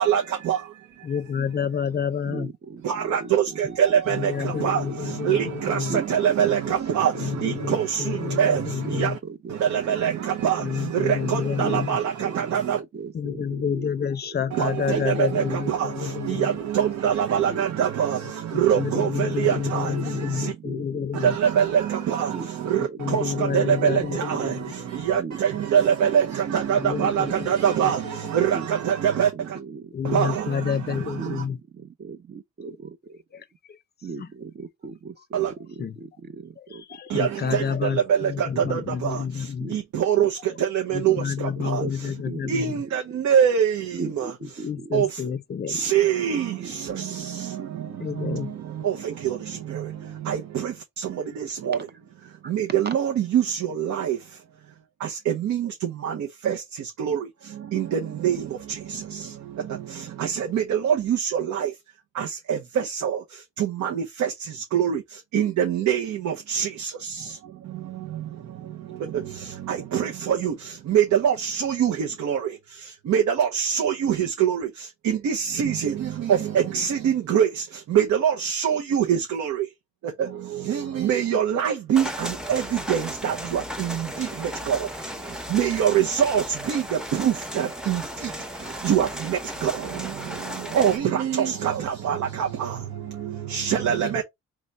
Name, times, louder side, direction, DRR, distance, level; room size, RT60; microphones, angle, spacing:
voice 1, 0.0-1.5 2.8-9.2 9.5-12.8 14.5-20.5 21.1-29.6 30.0-31.4 35.3-35.5 37.1-42.1 42.5-44.7 44.9-45.2 45.7-51.9 52.2-54.4 55.0-61.8 62.1-79.7 80.0-94.2, right 8 dB, 70° right, 0.9 m, -25 dB
voice 2, 1.0-2.5 4.1-6.0 7.2-9.2 10.6-12.0 13.1-16.5 18.5-21.4 22.8-24.6 26.7-27.5 27.8-28.0 29.9-31.6 34.2-34.3 35.8-35.9 36.7-39.7 40.9-42.7 44.6-45.8 48.0-48.5, left 7 dB, 35° left, 0.6 m, -29 dB
voice 3, 2.2-4.0 4.4-5.3 5.9-7.8 8.2-8.3 8.8-10.0 10.4-10.5 11.6-14.5 14.9-16.1 16.5-17.9 18.9-21.3 22.3-24.0 24.3-24.7 25.2-27.8 28.5-30.2 31.1-33.2 34.0-36.8 38.6-38.8 39.6-39.8 40.2-40.5 41.0-43.2 43.9-45.3 45.7-45.9 46.6-46.7 51.7-51.9 52.4-52.5 52.8-53.0, right 4 dB, 35° right, 0.7 m, -39 dB
sound 1, 81.9-91.0, equal, ahead, 0.7 m, -35 dB
3.9 x 3.2 x 3.3 m
cardioid pair, 90°, 30 cm